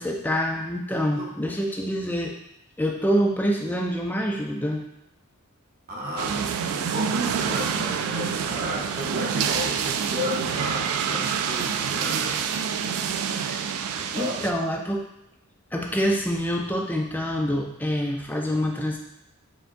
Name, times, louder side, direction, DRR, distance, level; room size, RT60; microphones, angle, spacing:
voice 1, 0.0-2.4 2.8-4.8 13.4-13.7 14.1-15.1 15.7-19.0, equal, 10° left, 1 dB, 0.3 m, -26 dB
voice 2, 5.9-12.4 13.9-14.5, equal, 40° right, -4 dB, 0.9 m, -33 dB
sound 1, 6.2-14.5, right 7 dB, 80° right, 0.3 m, -27 dB
4.4 x 3.7 x 2.6 m, 0.84 s
head